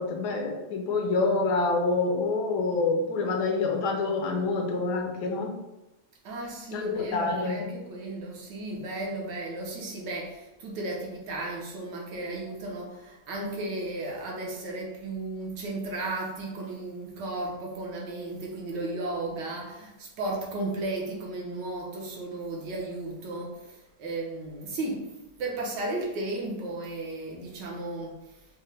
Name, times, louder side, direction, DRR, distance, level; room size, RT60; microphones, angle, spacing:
voice 1, 0.0-5.6 6.7-7.7, left 3 dB, 70° left, 2 dB, 1.1 m, -27 dB
voice 2, 6.2-25.1 25.4-28.2, right 2 dB, 75° right, -2 dB, 1.5 m, -34 dB
5.4 x 2.1 x 3.3 m, 1.0 s
omnidirectional pair, 1.9 m